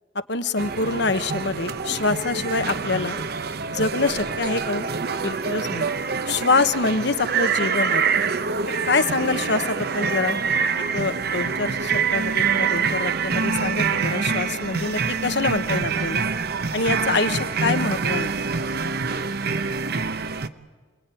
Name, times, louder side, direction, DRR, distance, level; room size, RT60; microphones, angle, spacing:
voice 1, 0.3-3.2 3.7-4.9 5.2-5.9 6.3-8.0 8.9-10.4 10.9-16.2 16.7-18.3, left 3 dB, 65° left, 10 dB, 1.1 m, -25 dB
sound 1, 0.6-20.5, right 5 dB, 55° right, 0.8 m, -25 dB
27.5 x 21.0 x 9.2 m, 1.4 s
head